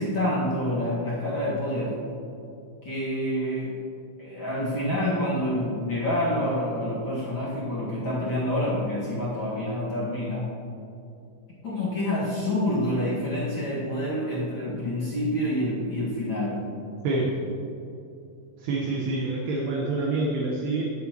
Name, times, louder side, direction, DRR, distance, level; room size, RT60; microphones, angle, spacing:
voice 1, 0.0-2.0 2.8-3.8 4.2-10.5 11.6-16.6, left 1 dB, 55° left, -8 dB, 1.4 m, -27 dB
voice 2, 18.6-20.8, right 3 dB, 70° right, -2 dB, 2.9 m, -27 dB
19.0 x 8.1 x 3.0 m, 2.6 s
omnidirectional pair, 5.1 m